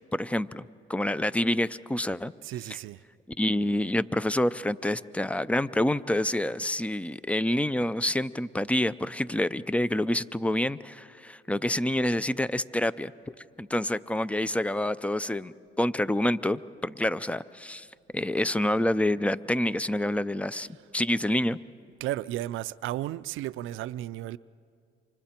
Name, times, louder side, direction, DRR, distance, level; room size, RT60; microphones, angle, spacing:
voice 1, 0.1-2.3 3.4-13.1 13.6-17.9 18.1-20.7 20.9-21.6, left 1 dB, 5° left, 0.4 m, -27 dB
voice 2, 2.4-3.0 22.0-24.4, right 14 dB, 85° right, 0.5 m, -34 dB
28.5 x 25.5 x 4.4 m
cardioid pair, 90°, 20 cm